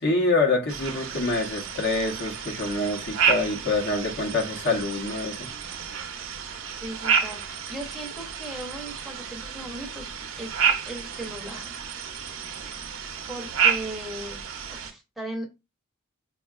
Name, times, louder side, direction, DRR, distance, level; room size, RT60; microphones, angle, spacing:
voice 1, 0.0-5.5, left 2 dB, 55° left, 0.9 m, -26 dB
sound 1, 0.7-14.9, right 6 dB, 65° right, 0.6 m, -30 dB
voice 2, 6.8-10.1 10.4-11.7 13.3-14.4 14.7-15.5, right 1 dB, ahead, 0.7 m, -37 dB
4.5 x 2.4 x 2.4 m
head